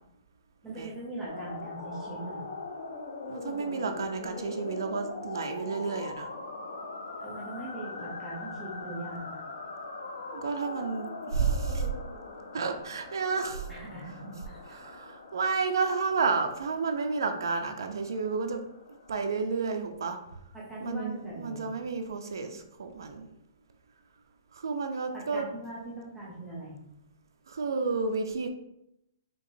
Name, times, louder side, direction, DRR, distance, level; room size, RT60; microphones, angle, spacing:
voice 1, 0.6-2.4 7.2-9.4 13.7-14.4 20.5-21.7 25.1-26.8, right 2 dB, ahead, -8 dB, 0.7 m, -40 dB
sound 1, 1.3-19.4, left 3 dB, 90° left, 0.7 m, -42 dB
voice 2, 3.3-6.3 10.3-11.9 12.5-13.7 14.7-18.6 19.1-20.2 20.8-23.3 24.5-25.5 27.5-28.5, right 4 dB, 85° right, 5 dB, 0.5 m, -31 dB
4.6 x 2.8 x 2.6 m, 0.80 s
hypercardioid pair, 170°, 2 cm